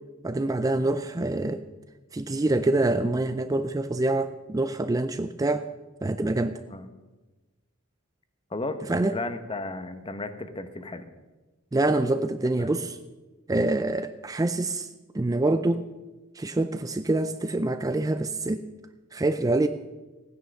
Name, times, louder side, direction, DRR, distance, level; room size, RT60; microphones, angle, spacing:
voice 1, 0.2-1.6 2.1-5.7 6.0-6.6 8.9-9.1 11.7-13.0 13.5-14.9 15.1-15.9 16.4-18.6 19.1-19.7, right 2 dB, 15° right, 10 dB, 0.4 m, -25 dB
voice 2, 9.0-11.1 12.6-12.7, left 2 dB, 25° left, 10 dB, 0.9 m, -34 dB
15.5 x 9.6 x 6.4 m, 1.2 s
head